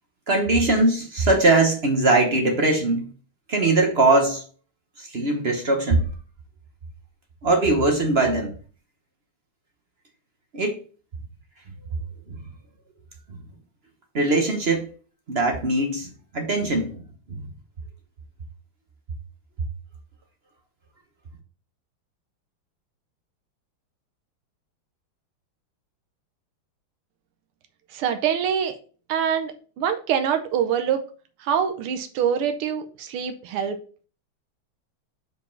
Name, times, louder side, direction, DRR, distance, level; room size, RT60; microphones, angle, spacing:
voice 1, 0.3-3.1 3.5-4.4 5.0-6.0 7.4-8.5 10.5-10.8 14.1-14.9 15.3-17.0 17.3-17.4, right 2 dB, 45° right, 0.8 m, -21 dB
voice 2, 27.9-28.8 29.1-31.0 31.4-33.8, right 8 dB, 90° right, 1.7 m, -25 dB
5.3 x 4.7 x 4.5 m
omnidirectional pair, 2.4 m